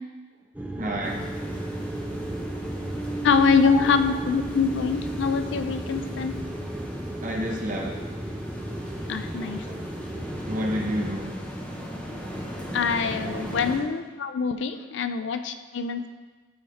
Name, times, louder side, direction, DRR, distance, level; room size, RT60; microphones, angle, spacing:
sound 1, 0.5-11.1, right 1 dB, 10° right, 0.6 m, -34 dB
voice 1, 0.8-1.3 3.6-3.8 7.2-8.0 9.4-9.8 10.4-11.4 13.2-13.5, equal, 40° right, -1 dB, 1.2 m, -30 dB
sound 2, 1.0-13.8, equal, 5° left, 1.3 m, -38 dB
voice 2, 3.2-6.4 9.1-9.7 12.7-16.1, left 5 dB, 65° left, 9 dB, 0.4 m, -24 dB
12.0 x 4.5 x 3.5 m, 1.3 s
head